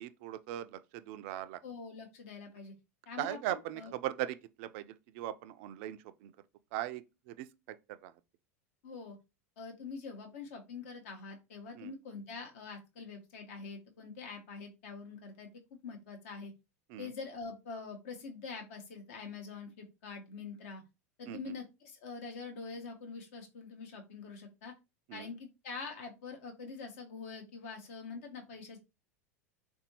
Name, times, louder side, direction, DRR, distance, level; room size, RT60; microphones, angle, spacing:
voice 1, 0.0-1.6 3.2-6.3 6.7-7.8 8.0-8.1 11.8-11.9 16.9-17.1 21.3-21.5 25.1-25.3, right 13 dB, 50° right, 0.3 m, -39 dB
voice 2, 1.6-2.7 3.1-3.9 8.8-9.2 9.6-15.5 15.8-16.5 17.0-20.8 21.2-24.7 25.1-28.8, left 4 dB, 60° left, 1.0 m, -45 dB
3.6 x 2.6 x 2.8 m
figure-of-eight pair, 85°, 9 cm